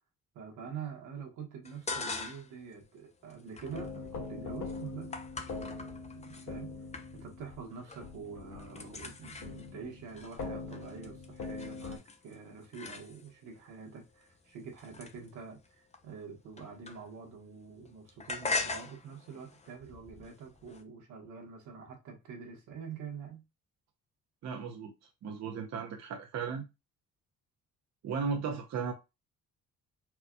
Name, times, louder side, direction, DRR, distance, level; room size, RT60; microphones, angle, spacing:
voice 1, 0.3-5.2 6.1-6.8 7.1-23.4, right 6 dB, 85° right, 1.3 m, -46 dB
sound 1, 1.6-2.6 3.0-6.5 6.9-7.4 7.7-8.2 8.4-13.5 14.1-17.4 17.6-20.8, left 3 dB, 20° left, 0.6 m, -42 dB
sound 2, 3.7-12.0, left 4 dB, 70° left, 1.2 m, -43 dB
voice 2, 24.4-24.9 25.2-26.6 28.0-28.9, right 6 dB, 60° right, 0.7 m, -35 dB
4.5 x 2.3 x 2.3 m
cardioid pair, 90°, 30 cm